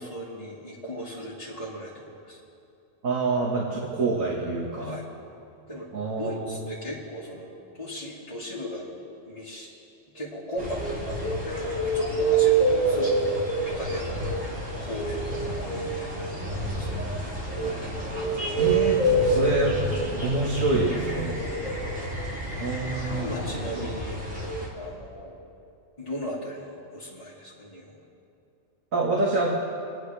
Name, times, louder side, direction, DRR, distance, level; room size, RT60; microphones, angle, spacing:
voice 1, 0.0-2.4 4.8-5.0 5.7-5.9 6.2-7.5 7.8-8.9 9.3-9.7 10.1-13.2 13.6-14.3 14.8-17.0 21.5-21.9 23.2-25.4 26.0-28.0, equal, 25° left, -8 dB, 2.0 m, -37 dB
voice 2, 3.0-5.0 5.9-6.7 18.6-19.7 20.2-21.3 22.6-23.3 28.9-29.5, right 3 dB, 90° right, -3 dB, 2.0 m, -26 dB
sound 1, 10.6-24.7, right 2 dB, 65° right, 3.3 m, -27 dB
29.5 x 10.0 x 3.4 m, 2.6 s
omnidirectional pair, 1.4 m